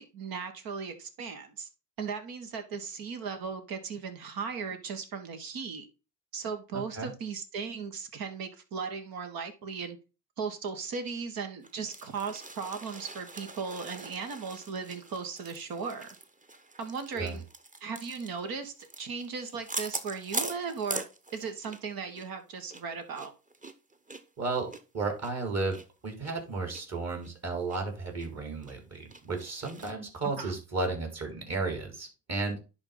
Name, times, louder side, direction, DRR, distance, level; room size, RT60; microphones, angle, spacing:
voice 1, 0.0-1.7 2.0-5.9 6.3-10.0 10.4-16.1 16.8-17.5 17.8-21.0 21.3-23.3 30.2-30.5, right 5 dB, 70° right, 1.7 m, -37 dB
voice 2, 6.7-7.1 17.1-17.4 24.4-25.8 26.0-32.6, right 3 dB, 45° right, 4.0 m, -33 dB
sound 1, 11.6-21.9 22.1-22.3 22.7-25.8 26.2-26.3 26.7-26.8 27.2-27.8 28.2-28.3 28.6-29.9, right 2 dB, 20° right, 1.1 m, -42 dB
10.5 x 3.6 x 4.0 m
supercardioid pair, 60°, 37 cm